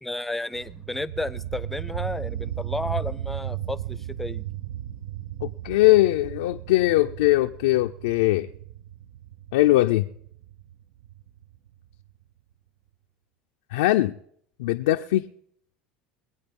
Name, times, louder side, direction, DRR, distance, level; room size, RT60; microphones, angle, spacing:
voice 1, 0.0-4.4, left 2 dB, 5° left, 16 dB, 0.6 m, -32 dB
sound 1, 0.5-12.1, right 12 dB, 80° right, 0.6 m, -35 dB
voice 2, 5.4-8.5 9.5-10.1 13.7-14.1 14.6-15.3, left 17 dB, 85° left, 4 dB, 0.4 m, -21 dB
21.0 x 8.6 x 5.3 m, 0.66 s
supercardioid pair, 105°, 3 cm